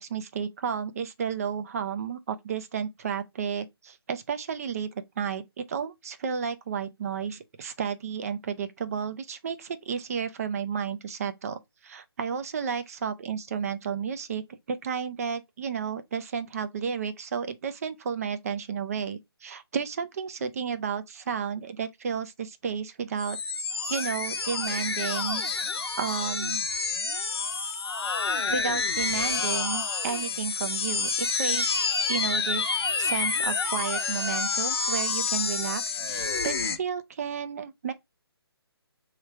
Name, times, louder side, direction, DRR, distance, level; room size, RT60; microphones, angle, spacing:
voice 1, 0.0-23.4 23.9-25.4 26.0-26.6 28.5-31.7 32.1-37.9, right 7 dB, 35° right, 0.5 m, -32 dB
sound 1, 23.2-36.8, left 4 dB, 70° left, 0.8 m, -28 dB
3.2 x 3.1 x 4.6 m
figure-of-eight pair, 150°, 14 cm